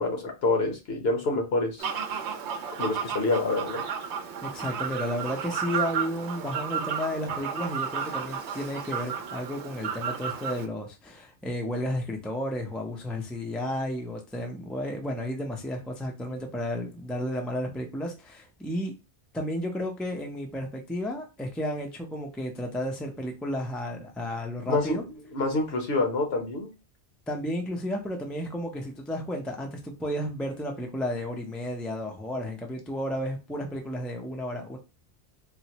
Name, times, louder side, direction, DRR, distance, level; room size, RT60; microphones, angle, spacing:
voice 1, 0.0-1.9 2.8-3.8 24.6-25.0 25.3-26.7, left 2 dB, 60° left, 1.1 m, -27 dB
Fowl, 1.8-10.7, right 7 dB, 75° right, 0.9 m, -33 dB
voice 2, 4.4-18.9 19.3-25.0 27.3-34.8, equal, ahead, 0.4 m, -32 dB
4.3 x 2.1 x 2.9 m
omnidirectional pair, 1.2 m